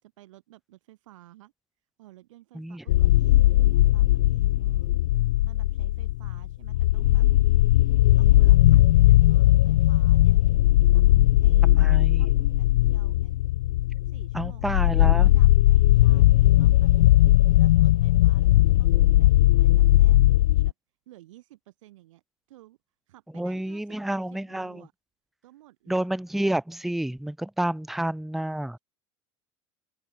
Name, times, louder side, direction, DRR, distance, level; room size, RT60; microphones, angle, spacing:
voice 1, 0.0-1.5 2.0-5.0 5.4-7.3 7.9-10.4 10.9-11.2 11.4-13.4 14.0-17.2 17.5-20.7 21.1-22.2 22.5-22.8 23.1-24.9 25.4-26.1, right 16 dB, 80° right, 7.5 m, -53 dB
sound 1, 2.9-20.7, left 15 dB, 85° left, 0.5 m, -19 dB
voice 2, 11.6-12.3 14.3-15.3 23.3-24.9 25.9-28.8, right 1 dB, ahead, 0.4 m, -29 dB
open air
hypercardioid pair, 90°, 16 cm